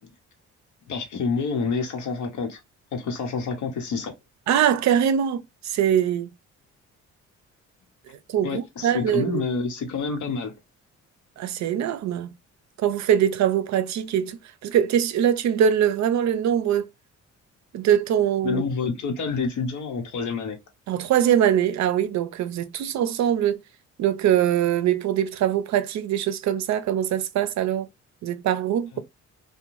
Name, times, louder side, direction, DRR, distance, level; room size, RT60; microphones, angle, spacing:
voice 1, 0.9-2.6 2.9-4.1 8.4-10.5 18.4-20.6, left 4 dB, 80° left, 0.9 m, -28 dB
voice 2, 4.5-6.3 8.3-9.4 11.4-12.3 12.8-16.9 17.7-18.6 20.9-23.6 24.0-27.9 28.2-29.0, right 9 dB, 65° right, 0.5 m, -22 dB
2.5 x 2.2 x 2.9 m
cardioid pair, 90°, 30 cm